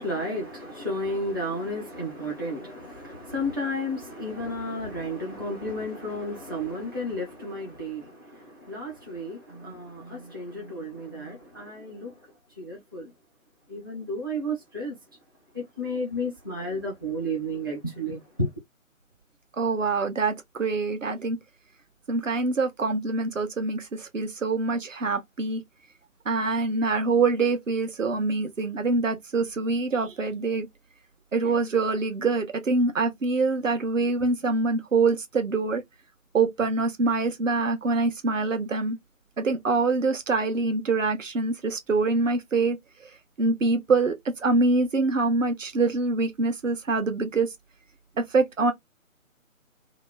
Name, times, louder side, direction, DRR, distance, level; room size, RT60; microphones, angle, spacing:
voice 1, 0.0-12.2 12.6-13.1 13.7-15.0 15.5-18.5, equal, 15° right, 0.6 m, -32 dB
voice 2, 19.6-21.4 22.1-25.6 26.3-30.7 31.3-35.8 36.3-39.0 39.4-42.8 43.4-47.5 48.2-48.7, right 3 dB, 65° right, 1.0 m, -25 dB
2.9 x 2.2 x 3.4 m
figure-of-eight pair, 155°, 42 cm